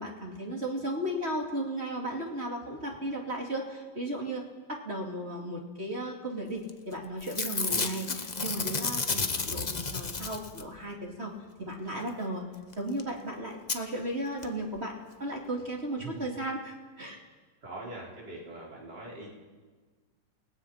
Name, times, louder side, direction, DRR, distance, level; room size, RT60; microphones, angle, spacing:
voice 1, 0.0-4.4 4.7-8.1 8.4-11.3 11.6-12.4 12.8-14.9 15.2-17.2, right 1 dB, 30° right, -1 dB, 3.0 m, -35 dB
Packing tape duct tape / Tearing, 6.7-6.9 7.2-10.8 12.7-12.8 13.0-13.1 13.7-13.8 14.4-14.5 14.7-14.8, left 4 dB, 40° left, 0.6 m, -32 dB
voice 2, 16.0-16.3 17.6-19.3, right 2 dB, 50° right, -4 dB, 5.4 m, -42 dB
28.5 x 19.0 x 5.9 m, 1.4 s
omnidirectional pair, 2.3 m